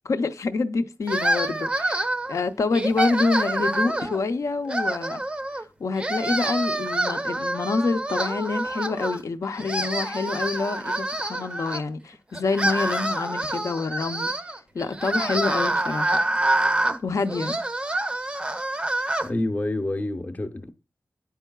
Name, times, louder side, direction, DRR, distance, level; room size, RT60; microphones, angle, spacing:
voice 1, 0.0-5.2 5.8-14.3 14.7-16.2 17.0-17.6, left 4 dB, 75° left, 0.5 m, -27 dB
sound 1, 1.1-2.3 2.7-4.2 4.7-5.6 5.9-9.2 9.5-11.8 12.3-19.3, right 1 dB, 20° right, 0.4 m, -26 dB
voice 2, 19.2-20.7, left 1 dB, 30° left, 0.6 m, -28 dB
9.7 x 4.5 x 2.2 m
wide cardioid pair, 105°, 5 cm